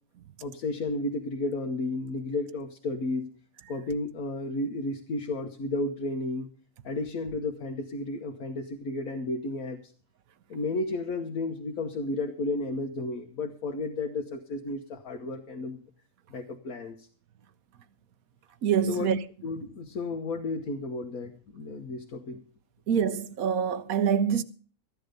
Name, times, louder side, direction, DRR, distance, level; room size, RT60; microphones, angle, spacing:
voice 1, 0.4-3.3 3.7-6.5 6.8-9.8 10.5-15.8 16.3-17.1 18.9-19.1 19.4-22.4, left 2 dB, 85° left, 1.6 m, -32 dB
voice 2, 18.6-19.2 22.9-24.4, right 7 dB, 90° right, 1.3 m, -25 dB
14.5 x 10.5 x 5.2 m
omnidirectional pair, 1.4 m